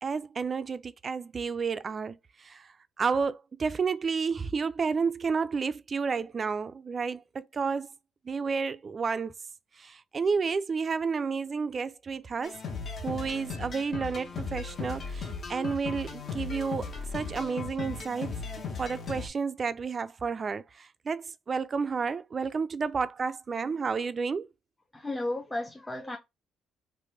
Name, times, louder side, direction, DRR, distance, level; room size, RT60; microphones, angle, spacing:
voice 1, 0.0-2.2 2.5-2.6 3.0-7.9 8.3-9.3 9.8-12.6 13.0-20.6 21.1-24.5, right 5 dB, 40° right, 0.4 m, -31 dB
sound 1, 12.4-19.3, left 5 dB, 50° left, 1.0 m, -37 dB
voice 2, 24.9-26.2, left 1 dB, 10° left, 0.6 m, -33 dB
3.2 x 2.1 x 3.2 m
cardioid pair, 85°, 0 cm